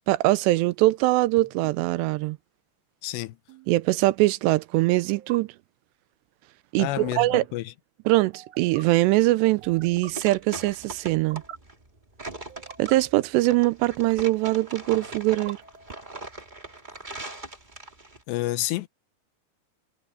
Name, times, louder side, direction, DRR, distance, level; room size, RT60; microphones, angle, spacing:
voice 1, 0.1-2.4 3.7-5.5 6.7-7.5 8.1-11.4 12.8-15.6, right 19 dB, 80° right, 2.7 m, -22 dB
sound 1, 1.4-1.7 3.5-3.8 5.1-5.4 6.9-7.2 8.3-8.8 9.6-10.1 11.1-11.6 12.5-13.0 14.0-14.6 15.3-16.1, right 7 dB, 60° right, 1.8 m, -45 dB
voice 2, 3.0-3.4 6.8-7.7 18.3-18.9, left 16 dB, 80° left, 3.0 m, -29 dB
sound 2, 9.6-18.2, right 2 dB, 15° right, 1.8 m, -40 dB
omnidirectional pair, 5.0 m